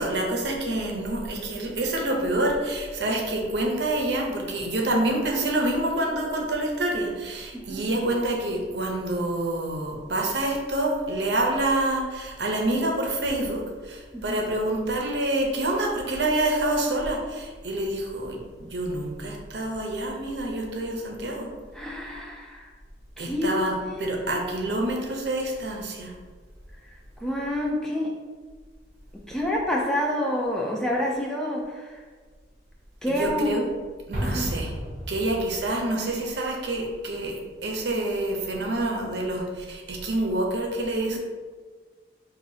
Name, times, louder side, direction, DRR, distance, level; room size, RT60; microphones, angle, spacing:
voice 1, 0.0-21.5 23.2-26.1 33.1-33.6 34.1-34.7 35.1-41.2, right 1 dB, 65° right, 0 dB, 0.8 m, -27 dB
voice 2, 7.5-7.9 14.1-14.4 21.7-22.7 23.2-24.4 27.2-28.1 29.3-32.0 33.0-33.6 34.2-34.5 41.1-41.2, left 1 dB, 5° left, -2 dB, 0.4 m, -28 dB
Explosion, 34.1-35.8, equal, 45° right, 1.0 m, -32 dB
5.8 x 2.7 x 2.7 m, 1.5 s
head